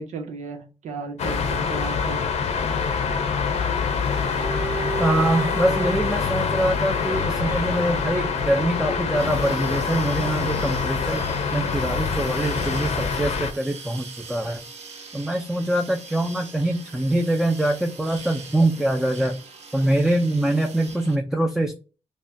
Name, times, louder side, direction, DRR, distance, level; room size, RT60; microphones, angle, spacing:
voice 1, 0.0-2.2, right 4 dB, 90° right, 5 dB, 1.0 m, -35 dB
sound 1, 1.2-13.5, left 5 dB, 70° left, 0.8 m, -25 dB
Bowed string instrument, 4.1-8.6, right 3 dB, 25° right, 1.1 m, -34 dB
voice 2, 5.0-11.3 11.5-14.6 15.1-19.4 19.7-21.7, right 1 dB, 5° right, 3 dB, 0.5 m, -24 dB
sound 2, 9.2-21.2, right 4 dB, 65° right, 1.3 m, -42 dB
5.2 x 2.3 x 2.7 m, 0.33 s
cardioid pair, 105°, 12 cm